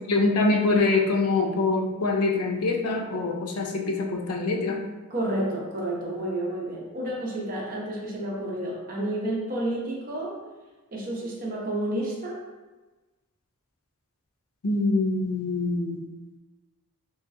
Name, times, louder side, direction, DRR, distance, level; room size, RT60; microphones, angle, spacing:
voice 1, 0.1-4.8 14.6-16.0, left 3 dB, 80° left, 2 dB, 0.5 m, -24 dB
voice 2, 5.1-10.3 10.9-12.4, right 1 dB, 40° right, -4 dB, 0.8 m, -30 dB
3.9 x 3.0 x 2.6 m, 1.2 s
head